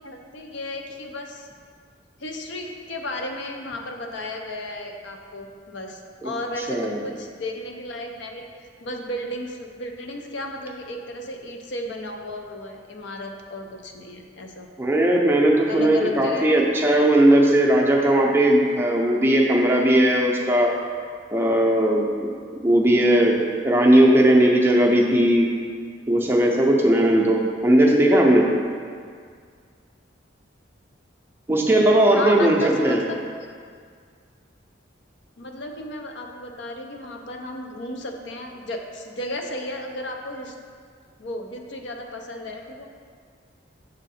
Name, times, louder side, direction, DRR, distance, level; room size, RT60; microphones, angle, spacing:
voice 1, 0.0-1.5 2.2-8.5 8.8-14.7 15.7-16.5 32.1-33.2 35.4-40.5 41.2-42.9, left 1 dB, 70° left, 3 dB, 0.6 m, -34 dB
voice 2, 6.6-7.0 14.8-20.7 21.3-22.3 22.6-23.4 23.6-25.5 26.1-28.5 31.5-33.0, right 1 dB, 10° right, -2 dB, 0.5 m, -18 dB
6.4 x 3.6 x 4.1 m, 2.1 s
head